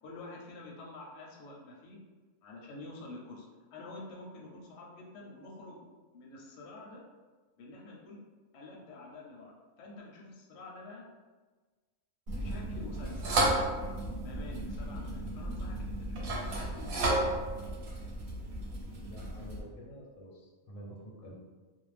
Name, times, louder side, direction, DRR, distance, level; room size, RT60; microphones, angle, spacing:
voice 1, 0.0-2.0 2.4-5.9 6.1-7.0 7.6-8.2 8.5-11.0 12.3-13.4 14.2-16.2 16.5-17.4, left 2 dB, 65° left, -2 dB, 0.8 m, -48 dB
sound 1, 12.3-19.6, right 1 dB, 70° right, 0.9 m, -33 dB
voice 2, 19.0-21.3, equal, 80° left, -2 dB, 1.0 m, -48 dB
2.5 x 2.1 x 3.2 m, 1.3 s
omnidirectional pair, 1.5 m